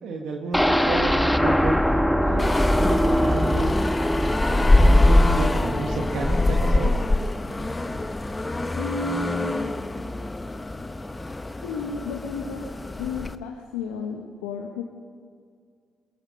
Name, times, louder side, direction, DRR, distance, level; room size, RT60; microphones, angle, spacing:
voice 1, 0.0-1.8 2.2-3.7 4.2-6.9, right 3 dB, 65° right, 1 dB, 2.1 m, -31 dB
sound 1, 0.5-8.4 8.8-8.9 9.2-9.3, equal, 5° left, 1.4 m, -24 dB
sound 2, 2.4-13.3, left 2 dB, 20° left, 1.3 m, -23 dB
voice 2, 8.7-9.7 11.6-12.7 13.0-14.8, left 4 dB, 80° left, 1 dB, 1.5 m, -32 dB
24.0 x 22.5 x 5.4 m, 2.2 s
hypercardioid pair, 45°, 0 cm